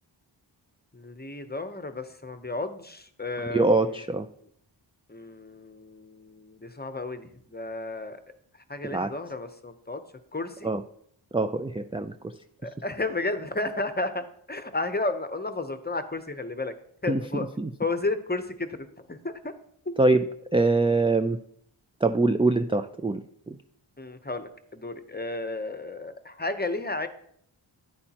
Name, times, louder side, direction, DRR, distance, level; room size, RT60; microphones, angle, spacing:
voice 1, 0.9-4.0 5.1-8.2 8.7-10.0 10.3-10.7 12.6-16.7 17.0-17.5 17.8-19.5 19.9-20.0 24.0-27.1, left 2 dB, 20° left, 9 dB, 0.8 m, -33 dB
voice 2, 3.5-4.3 8.8-9.1 10.6-10.8 11.3-12.1 17.1-17.7 20.0-20.3 20.5-21.4 22.0-23.2 23.5-23.6, right 2 dB, 15° right, 8 dB, 0.3 m, -23 dB
10.0 x 8.6 x 2.9 m, 0.66 s
wide cardioid pair, 65°, 48 cm